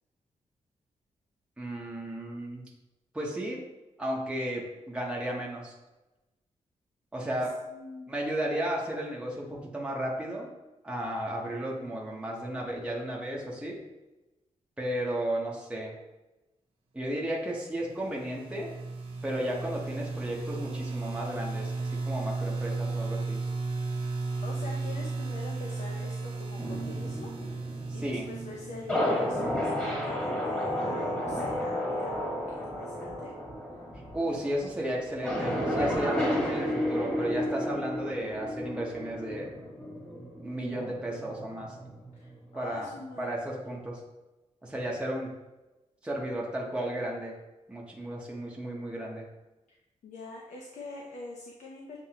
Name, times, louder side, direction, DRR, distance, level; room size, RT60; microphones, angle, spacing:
voice 1, 1.6-2.6 3.1-3.6 4.0-5.7 7.1-7.5 8.1-10.5 10.8-13.8 14.8-15.9 16.9-18.7 19.2-23.4 27.9-28.3 34.1-39.5 40.4-41.8 42.5-42.9 43.2-44.0 44.6-45.3 46.0-47.3 47.7-49.2, right 1 dB, 10° right, -3 dB, 0.8 m, -34 dB
voice 2, 7.3-8.1 24.4-27.3 27.6-33.3 42.1-43.3 49.7-49.8 50.0-52.0, left 3 dB, 70° left, -1 dB, 0.6 m, -44 dB
sound 1, 17.8-29.6, right 3 dB, 45° right, 0.7 m, -35 dB
sound 2, 26.6-42.4 42.8-43.5, equal, 10° left, 1.5 m, -33 dB
7.3 x 2.6 x 2.8 m, 1.0 s
wide cardioid pair, 140°, 13 cm